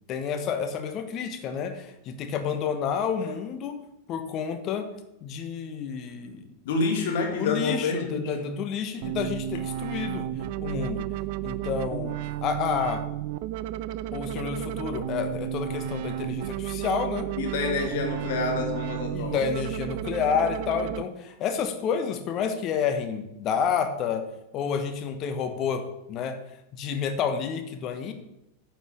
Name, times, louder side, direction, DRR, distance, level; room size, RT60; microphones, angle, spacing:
voice 1, 0.1-3.8 4.1-4.9 5.2-6.5 7.4-10.3 10.6-11.0 11.4-12.2 12.4-13.0 14.1-17.3 19.1-24.2 24.5-26.4 26.7-28.1, left 6 dB, 35° left, 7 dB, 1.2 m, -29 dB
voice 2, 6.7-8.4 17.4-19.4, left 4 dB, 55° left, 3 dB, 1.9 m, -28 dB
sound 1, 9.0-21.0, right 13 dB, 45° right, 0.4 m, -32 dB
9.5 x 5.8 x 7.2 m, 0.88 s
figure-of-eight pair, 90°, 0 cm